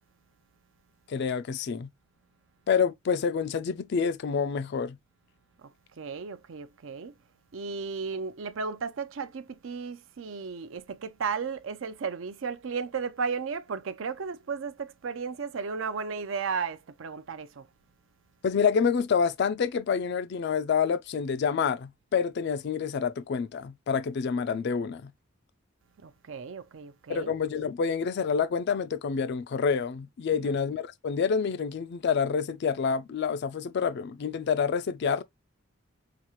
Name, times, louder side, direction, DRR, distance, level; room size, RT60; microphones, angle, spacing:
voice 1, 1.1-1.9 2.7-5.0 18.4-25.1 27.1-35.2, left 6 dB, 55° left, 0.4 m, -27 dB
voice 2, 6.0-7.1 7.5-17.7 26.0-27.3 30.3-30.6, right 5 dB, 70° right, 0.5 m, -34 dB
5.8 x 2.4 x 2.9 m
head